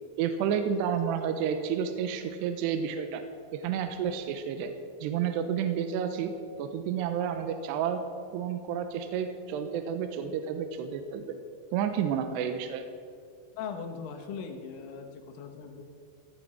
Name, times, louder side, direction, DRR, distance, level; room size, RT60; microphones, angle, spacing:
voice 1, 0.2-3.2 3.5-4.7 5.0-6.3 6.6-8.0 8.3-11.3 11.7-12.8, right 8 dB, 80° right, 7 dB, 2.5 m, -30 dB
voice 2, 13.5-15.8, left 6 dB, 90° left, 4 dB, 3.7 m, -39 dB
16.0 x 11.0 x 4.9 m, 2.3 s
omnidirectional pair, 5.6 m